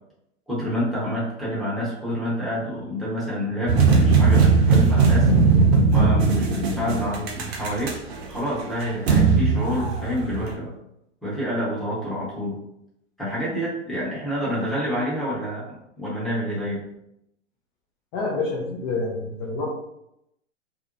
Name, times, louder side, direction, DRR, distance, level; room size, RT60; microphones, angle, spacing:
voice 1, 0.5-5.3 5.9-7.9 8.3-10.7 11.2-12.6 13.2-16.8, equal, ahead, -9 dB, 0.9 m, -28 dB
sound 1, 3.7-10.5, right 4 dB, 55° right, 0.7 m, -18 dB
voice 2, 18.1-19.7, left 3 dB, 25° left, -4 dB, 0.3 m, -27 dB
2.6 x 2.1 x 2.5 m, 0.82 s
hypercardioid pair, 110°, 37 cm